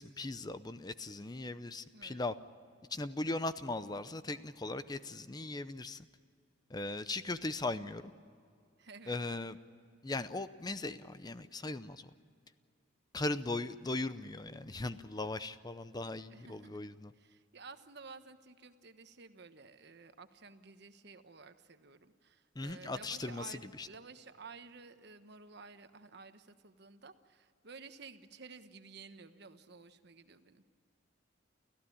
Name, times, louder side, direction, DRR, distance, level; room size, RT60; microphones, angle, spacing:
voice 1, 0.0-2.3 2.9-6.1 6.7-8.1 9.1-9.6 10.0-12.1 13.1-17.1 22.6-23.9, left 2 dB, 20° left, 12 dB, 0.6 m, -38 dB
voice 2, 1.9-2.2 8.8-9.2 16.3-16.8 17.1-30.6, right 4 dB, 60° right, 9 dB, 1.2 m, -53 dB
29.5 x 15.0 x 10.0 m, 2.2 s
head